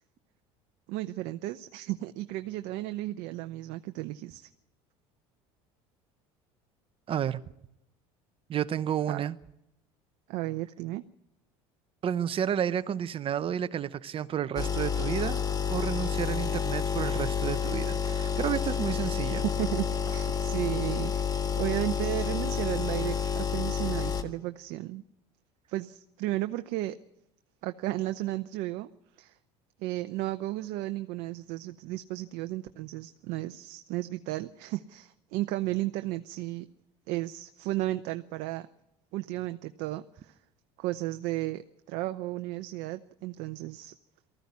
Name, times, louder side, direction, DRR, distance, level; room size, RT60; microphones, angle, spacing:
voice 1, 0.9-4.5 9.1-9.2 10.3-11.0 19.6-25.0 25.7-27.0 27.6-28.9 29.2-29.4 29.8-36.7 37.1-38.7 39.1-40.3 40.8-43.9, right 16 dB, 70° right, 0.7 m, -34 dB
voice 2, 7.1-7.4 8.5-9.4 12.0-15.4 15.7-19.4, right 9 dB, 40° right, 0.9 m, -31 dB
sound 1, 14.6-24.2, left 6 dB, 25° left, 1.6 m, -29 dB
19.0 x 14.5 x 9.6 m
supercardioid pair, 90°, 14 cm